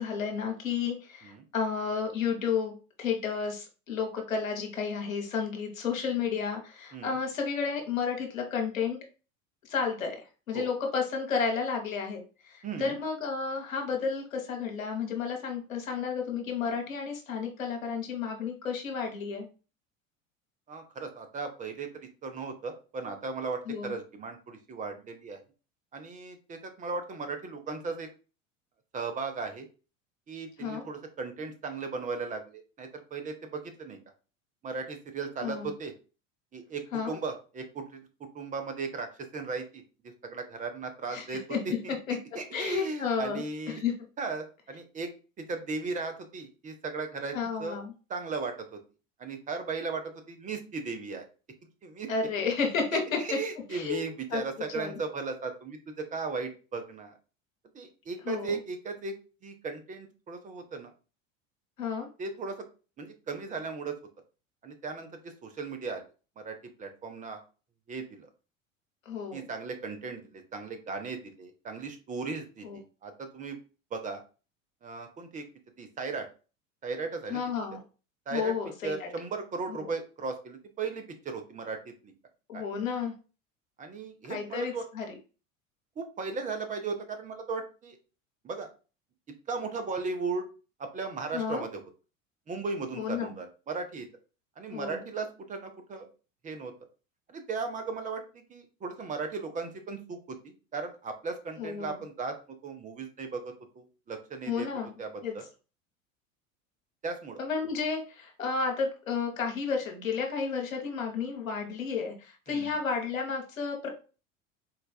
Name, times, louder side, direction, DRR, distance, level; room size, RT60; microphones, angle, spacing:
voice 1, 0.0-9.0 9.6-19.5 23.7-23.9 30.6-30.9 35.4-35.7 36.9-37.2 41.1-41.2 41.5-41.6 42.1-42.2 42.5-43.9 47.3-47.9 52.1-53.2 53.7-54.0 54.3-54.4 54.7-55.0 58.3-58.6 61.8-62.1 69.1-69.5 72.6-72.8 77.3-77.8 78.3-79.1 79.7-79.9 82.5-83.1 84.3-85.2 91.3-91.6 93.0-93.3 94.7-95.0 101.6-101.9 104.5-105.0 105.2-105.3 107.4-113.9, left 5 dB, 80° left, 2 dB, 0.9 m, -32 dB
voice 2, 12.6-13.0 20.7-21.9 22.2-25.4 25.9-28.1 28.9-29.7 30.3-34.0 34.6-35.9 36.5-38.1 38.3-41.9 42.3-43.8 44.2-45.1 45.4-47.8 48.1-48.8 49.2-51.2 51.8-52.1 52.9-57.1 57.7-59.2 59.4-60.9 62.2-62.6 63.0-63.9 64.6-66.0 66.4-67.4 67.9-68.3 69.3-73.6 73.9-74.2 74.8-75.4 75.8-76.3 76.8-77.4 78.3-78.5 78.8-81.8 82.0-82.1 82.5-82.6 83.8-84.8 86.0-88.0 88.4-88.7 89.5-90.5 90.8-91.8 92.5-94.1 94.6-96.1 96.4-96.7 97.3-102.3 102.6-104.7 105.0-105.4 107.0-107.4 112.5-112.8, right 4 dB, 20° right, 6 dB, 0.6 m, -36 dB
3.9 x 2.3 x 2.3 m, 0.34 s
figure-of-eight pair, 75°, 40 cm